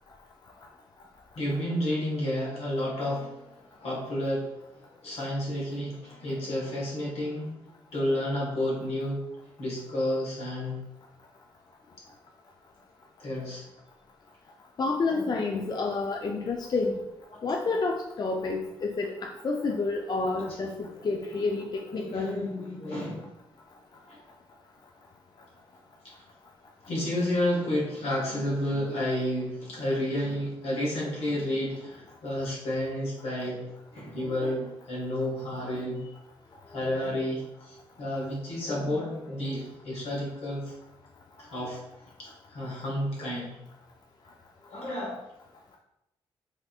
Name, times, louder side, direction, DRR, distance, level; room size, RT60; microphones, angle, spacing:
voice 1, 1.3-7.5 7.9-9.2 9.6-10.8 13.2-13.6 15.0-15.3 17.3-17.6 21.9-23.2 24.0-24.2 26.0-26.1 26.9-33.6 33.9-36.0 36.7-40.7 41.4-41.9 42.2-43.6 44.7-45.2, left 1 dB, 75° left, -3 dB, 1.2 m, -31 dB
voice 2, 14.8-17.0 17.4-22.4, left 3 dB, 40° left, 2 dB, 0.4 m, -29 dB
3.4 x 2.6 x 2.4 m, 0.91 s
supercardioid pair, 55°, 11 cm